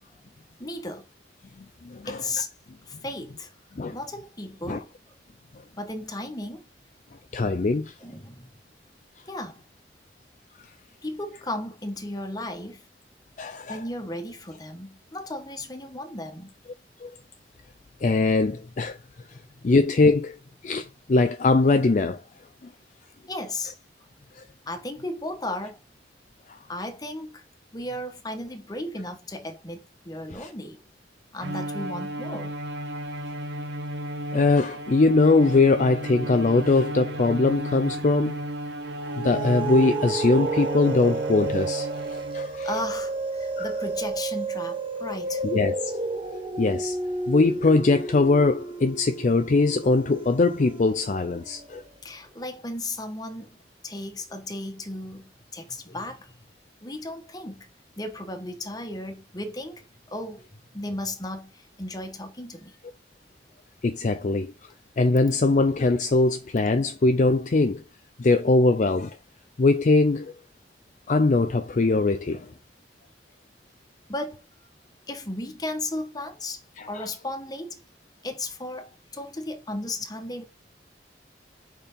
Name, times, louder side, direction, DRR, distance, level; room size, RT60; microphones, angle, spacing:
voice 1, 0.6-1.0 2.0-2.5 2.9-3.5 3.9-4.9 5.8-6.7 8.0-8.5 9.3-9.6 11.0-12.8 13.7-16.5 23.3-23.8 24.7-25.8 26.7-27.4 27.7-30.8 31.3-32.5 42.6-45.4 52.0-53.6 53.8-56.3 56.8-57.7 58.0-62.8 74.1-74.4 75.1-77.8 78.2-80.4, left 1 dB, 20° left, 1.3 m, -35 dB
voice 2, 1.6-2.2 3.8-4.0 4.7-4.8 7.3-7.9 13.4-13.8 17.0-17.1 18.0-19.0 19.3-19.4 19.6-22.2 24.3-24.4 26.5-26.6 30.3-30.5 34.3-38.4 39.2-42.7 43.6-43.7 45.4-45.9 46.6-47.0 47.3-51.8 63.8-64.5 65.0-67.8 68.2-69.2 69.6-70.3 71.1-72.5 76.8-77.1, left 3 dB, 45° left, 0.4 m, -22 dB
Bowed string instrument, 31.4-42.6, equal, 70° right, 0.8 m, -34 dB
sound 1, 38.8-51.6, right 3 dB, 30° right, 0.8 m, -31 dB
5.1 x 4.5 x 5.3 m
head